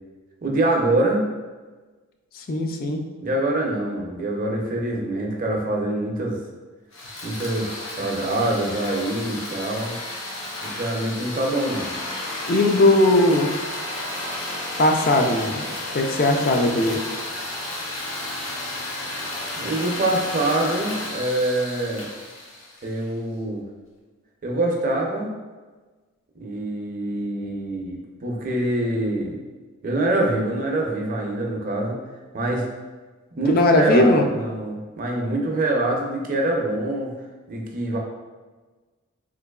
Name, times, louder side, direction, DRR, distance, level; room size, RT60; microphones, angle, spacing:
voice 1, 0.4-1.2 3.2-6.4 7.2-10.0 10.6-11.9 19.0-22.1 22.8-23.6 24.4-25.3 26.4-29.4 29.8-32.0 32.3-32.6 33.3-37.1 37.5-38.0, right 1 dB, 40° right, -1 dB, 0.5 m, -25 dB
voice 2, 2.3-3.0 12.5-13.5 14.8-15.6 15.9-17.0 33.5-34.3, left 1 dB, 45° left, 3 dB, 0.4 m, -18 dB
sound 1, 6.9-23.1, left 1 dB, 65° left, 0.7 m, -32 dB
3.8 x 2.9 x 2.3 m, 1.3 s
head